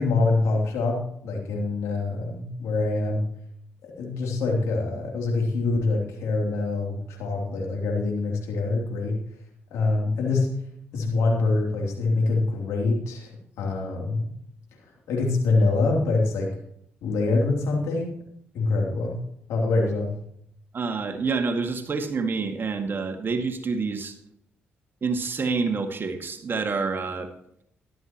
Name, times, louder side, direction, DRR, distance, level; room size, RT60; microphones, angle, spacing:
voice 1, 0.0-3.2 3.8-9.2 9.7-10.5 10.9-13.3 13.6-14.3 15.1-16.5 17.0-18.1 18.5-19.2 19.5-20.1, left 3 dB, 80° left, 0 dB, 3.1 m, -25 dB
voice 2, 20.7-24.2 25.0-27.3, right 4 dB, 50° right, 5 dB, 2.0 m, -27 dB
13.5 x 12.5 x 3.0 m, 0.70 s
supercardioid pair, 50°, 5 cm